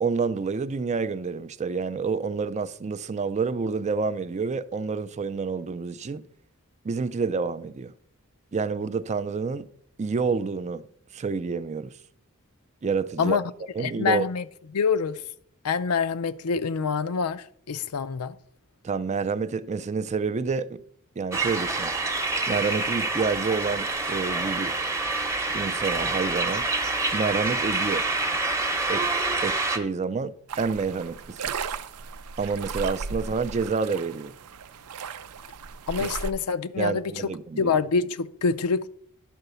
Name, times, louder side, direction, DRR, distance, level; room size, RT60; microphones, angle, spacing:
voice 1, 0.0-6.2 6.8-7.9 8.5-9.7 10.0-10.8 11.1-11.9 12.8-13.4 13.7-14.2 18.8-20.8 21.2-21.9 22.5-24.8 25.5-26.7 27.1-28.0 28.9-29.1 29.4-31.5 32.4-34.3 36.0-36.1 36.8-37.7, right 5 dB, 30° right, 0.4 m, -28 dB
voice 2, 13.8-14.5 14.7-15.2 15.6-18.4 35.9-37.3 37.6-38.9, left 5 dB, 80° left, 0.5 m, -26 dB
sound 1, 21.3-29.8, right 3 dB, 15° right, 0.8 m, -27 dB
sound 2, 30.5-36.3, right 5 dB, 80° right, 0.5 m, -36 dB
11.0 x 4.0 x 6.8 m
head